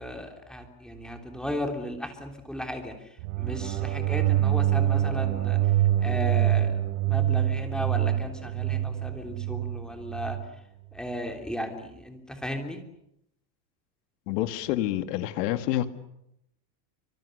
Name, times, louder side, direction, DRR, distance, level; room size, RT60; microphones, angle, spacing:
voice 1, 0.0-2.9 3.4-5.6 6.0-6.8 7.0-10.4 10.9-12.8, left 1 dB, ahead, 3.3 m, -35 dB
sound 1, 3.2-10.5, right 12 dB, 70° right, 4.4 m, -25 dB
voice 2, 14.3-15.9, left 13 dB, 70° left, 2.4 m, -28 dB
29.5 x 26.0 x 6.7 m
supercardioid pair, 150°, 50 cm